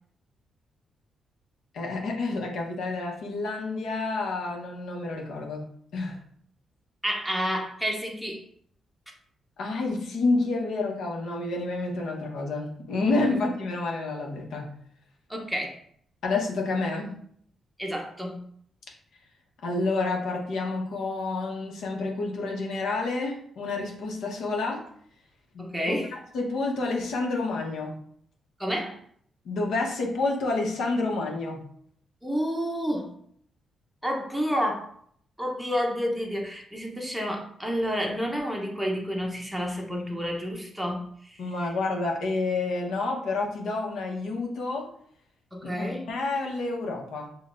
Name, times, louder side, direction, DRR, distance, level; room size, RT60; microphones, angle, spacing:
voice 1, 1.7-5.7 5.9-6.2 9.6-14.7 16.2-17.2 19.6-24.9 25.5-26.0 26.3-27.9 29.4-31.6 41.4-44.9 45.6-47.3, left 3 dB, 80° left, 0 dB, 0.9 m, -29 dB
voice 2, 7.0-8.4 15.3-15.8 17.8-18.4 25.6-26.1 28.6-29.0 32.2-33.1 34.0-34.9 35.4-41.4 45.5-46.1, equal, ahead, 0 dB, 0.7 m, -30 dB
6.4 x 2.3 x 2.5 m, 0.63 s
cardioid pair, 115°, 0 cm